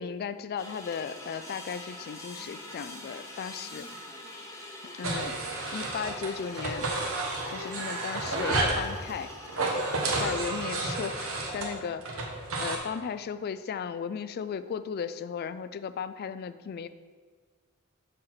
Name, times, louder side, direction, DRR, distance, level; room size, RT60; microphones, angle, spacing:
voice 1, 0.0-3.9 5.0-5.3 5.7-6.8 7.5-9.3 10.2-12.3 12.6-16.9, left 6 dB, 45° left, 13 dB, 0.3 m, -36 dB
sound 1, 0.6-10.9, left 1 dB, 15° left, 0.9 m, -44 dB
sound 2, 5.0-6.3 6.6-8.8 9.5-12.8, right 2 dB, 65° right, 1.1 m, -31 dB
6.4 x 4.3 x 5.8 m, 1.5 s
head